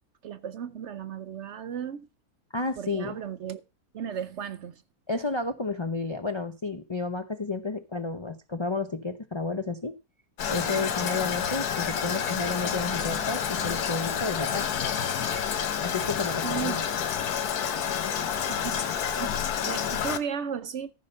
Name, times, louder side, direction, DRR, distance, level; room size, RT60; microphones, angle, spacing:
voice 1, 0.2-2.1 2.8-3.6 3.9-4.8 16.4-16.8 18.5-20.9, right 8 dB, 60° right, 0.8 m, -35 dB
voice 2, 2.5-3.2 5.1-9.9 10.5-14.7 15.8-16.8, left 3 dB, 45° left, 0.3 m, -31 dB
Toilet flush, 10.4-20.2, left 8 dB, 80° left, 1.5 m, -29 dB
14.0 x 5.6 x 5.5 m
omnidirectional pair, 1.6 m